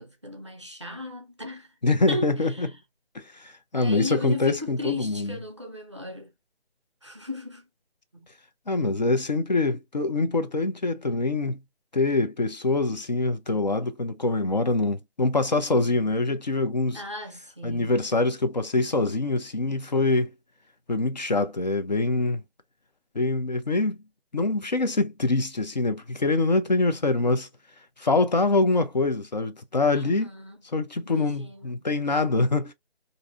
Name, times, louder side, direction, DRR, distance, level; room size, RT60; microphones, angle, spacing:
voice 1, 0.0-1.7 2.1-2.3 2.5-2.7 3.7-6.3 7.0-7.7 8.1-8.3 16.9-18.0 29.9-30.6 31.0-31.8, left 2 dB, 30° right, 0.5 m, -36 dB
voice 2, 1.8-2.7 3.1-5.4 8.7-11.6 11.9-17.0 17.6-20.3 20.9-22.4 23.1-24.0 24.3-27.5 28.0-30.3 30.7-32.7, left 3 dB, 40° left, 0.5 m, -24 dB
4.1 x 2.6 x 2.4 m
figure-of-eight pair, 155°, 32 cm